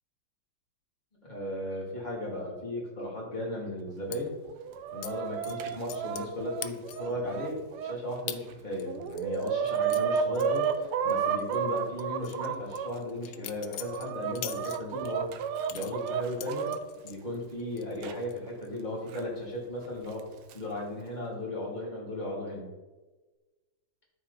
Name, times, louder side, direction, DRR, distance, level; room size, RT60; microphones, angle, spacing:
voice 1, 1.2-4.3 4.9-15.3 15.7-16.7 17.0-20.2 20.5-22.7, left 1 dB, 20° left, -5 dB, 2.7 m, -36 dB
sound 1, 4.1-4.2 5.0-5.1 5.4-6.3 6.6-7.1 7.6-7.7 8.3-8.4 8.8-11.1 11.4-11.6 12.0-15.1 15.6-17.2 17.6-18.0 18.3-18.7, left 13 dB, 80° left, 1.4 m, -42 dB
Chicken rooster, 4.5-7.9 8.5-8.6 8.9-12.9 13.5-16.8 18.0-18.1 19.1-19.2 20.2-20.5, right 7 dB, 80° right, 1.5 m, -32 dB
13.0 x 4.7 x 4.1 m, 1.2 s
omnidirectional pair, 2.3 m